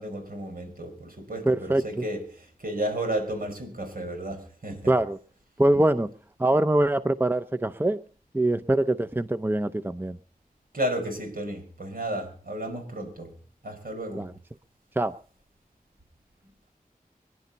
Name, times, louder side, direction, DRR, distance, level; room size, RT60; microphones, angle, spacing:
voice 1, 0.0-4.9 10.7-13.3 13.6-14.3, right 1 dB, 75° right, 4 dB, 5.2 m, -33 dB
voice 2, 1.5-1.8 4.9-5.2 5.6-6.1 6.4-8.0 8.3-10.2 14.1-14.3 15.0-15.1, right 1 dB, 15° right, 12 dB, 0.6 m, -23 dB
25.5 x 11.0 x 4.0 m, 0.42 s
wide cardioid pair, 65°, 15 cm